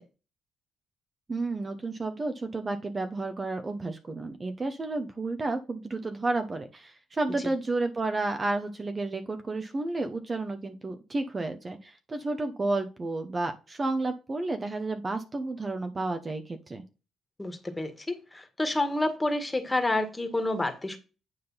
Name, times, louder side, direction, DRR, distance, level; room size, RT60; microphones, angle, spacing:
voice 1, 1.3-16.8, right 2 dB, 30° right, 1.0 m, -31 dB
voice 2, 17.4-21.0, left 2 dB, 15° left, 1.8 m, -29 dB
9.4 x 3.7 x 5.6 m
cardioid pair, 90°, 0 cm